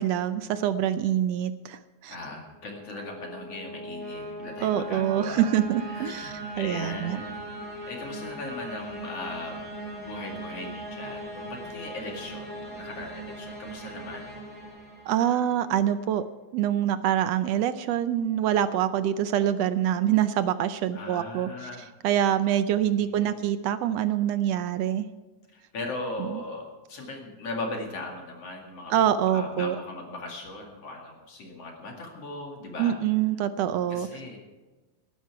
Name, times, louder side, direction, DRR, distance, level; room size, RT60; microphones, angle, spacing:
voice 1, 0.0-2.1 4.6-7.2 15.1-16.2 16.5-21.5 22.0-25.0 28.9-29.7 32.8-34.1, right 10 dB, 75° right, 12 dB, 1.5 m, -25 dB
voice 2, 2.1-5.5 5.8-7.4 7.8-14.3 20.9-21.9 22.9-23.5 25.5-29.0 29.3-33.0 33.9-34.5, left 2 dB, 55° left, 0 dB, 3.1 m, -38 dB
sound 1, 2.5-15.6, right 1 dB, 5° right, 5.1 m, -39 dB
19.5 x 11.0 x 4.7 m, 1.3 s
omnidirectional pair, 3.5 m